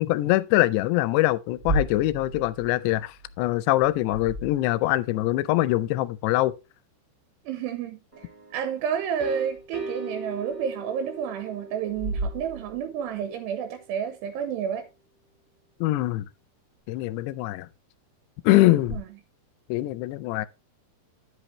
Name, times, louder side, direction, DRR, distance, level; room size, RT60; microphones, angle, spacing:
voice 1, 0.0-6.5 15.8-16.3 16.9-17.7 18.4-19.0 19.7-20.5, left 17 dB, 80° left, 2.6 m, -23 dB
sound 1, 1.5-5.1 9.5-9.6 10.5-10.6 11.9-13.2 18.8-19.0, right 2 dB, 30° right, 1.8 m, -34 dB
voice 2, 7.5-14.9 18.7-19.0, right 8 dB, 80° right, 2.7 m, -30 dB
sound 2, 8.1-13.8, right 2 dB, 10° right, 0.7 m, -40 dB
10.5 x 8.0 x 3.1 m
omnidirectional pair, 5.1 m